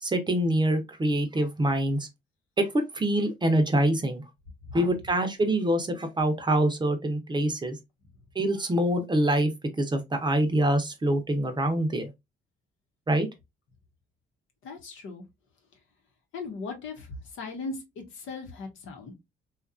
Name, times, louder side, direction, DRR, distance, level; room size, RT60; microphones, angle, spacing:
voice 1, 0.0-2.1 2.6-4.2 4.7-7.8 8.4-9.5 9.8-12.1 13.1-13.3, right 1 dB, 20° right, 0.6 m, -25 dB
voice 2, 14.6-15.2 16.3-17.1 17.3-17.8 18.1-19.1, left 4 dB, 85° left, 1.0 m, -37 dB
2.8 x 2.4 x 2.4 m
cardioid pair, 90°, 20 cm